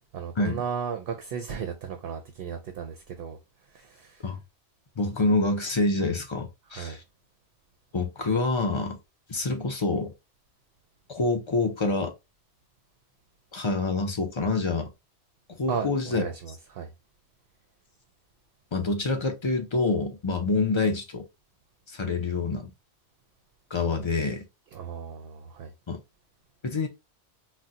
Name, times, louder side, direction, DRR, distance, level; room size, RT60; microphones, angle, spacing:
voice 1, 0.1-3.4 3.7-4.2 6.8-7.0 15.7-16.9 24.7-25.7, right 7 dB, 60° right, 0.7 m, -35 dB
voice 2, 5.0-7.0 7.9-9.0 9.3-10.1 11.1-12.1 13.5-14.9 15.6-16.2 18.7-21.2 21.9-22.7 23.7-24.5 25.9-26.0 26.6-26.9, left 3 dB, 40° left, 0.4 m, -26 dB
4.0 x 2.1 x 2.4 m
omnidirectional pair, 1.2 m